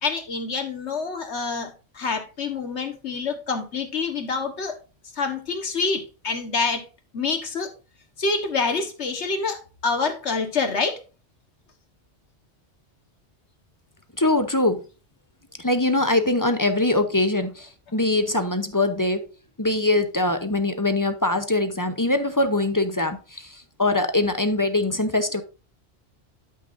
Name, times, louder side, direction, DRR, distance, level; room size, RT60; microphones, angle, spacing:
voice 1, 0.0-4.8 5.1-6.9 7.1-7.7 8.2-11.0, left 4 dB, 90° left, 1.7 m, -27 dB
voice 2, 14.2-14.8 15.6-19.2 19.6-25.4, left 2 dB, 20° left, 0.7 m, -22 dB
11.5 x 6.2 x 2.6 m
omnidirectional pair, 1.1 m